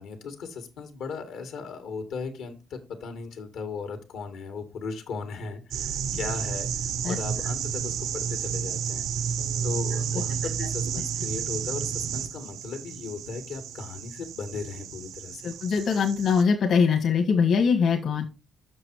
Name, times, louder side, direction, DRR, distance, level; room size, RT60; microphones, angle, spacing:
voice 1, 0.0-6.7 7.0-9.1 9.6-15.4, left 4 dB, 85° left, 7 dB, 2.2 m, -37 dB
sound 1, 5.7-16.4, right 8 dB, 90° right, 1.0 m, -31 dB
voice 2, 15.4-18.3, left 6 dB, 65° left, 3 dB, 1.8 m, -22 dB
7.6 x 6.3 x 4.8 m, 0.28 s
cardioid pair, 90°, 0 cm